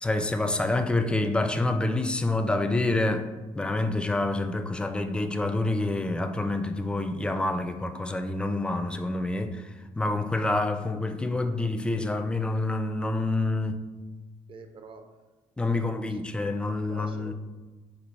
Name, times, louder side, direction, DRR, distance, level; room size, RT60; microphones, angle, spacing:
voice 1, 0.0-3.3 3.5-9.7 10.0-13.8 15.6-17.3, left 2 dB, 10° left, 0.3 m, -27 dB
voice 2, 14.5-15.0 15.7-16.5 16.9-17.3, right 4 dB, 45° right, 0.5 m, -46 dB
4.5 x 2.4 x 4.1 m
cardioid pair, 90°, 12 cm